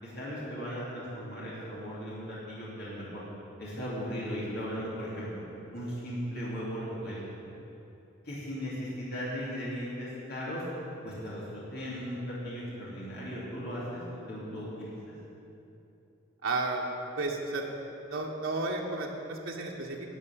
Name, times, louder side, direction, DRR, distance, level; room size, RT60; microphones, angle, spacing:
voice 1, 0.0-3.2 3.6-5.4 5.7-7.2 8.2-10.6 11.0-14.0 14.3-15.1, equal, 50° left, -7 dB, 2.8 m, -37 dB
voice 2, 16.4-16.9 17.2-17.6 18.1-20.2, right 3 dB, 90° right, -1 dB, 1.4 m, -33 dB
12.0 x 6.2 x 9.2 m, 2.9 s
head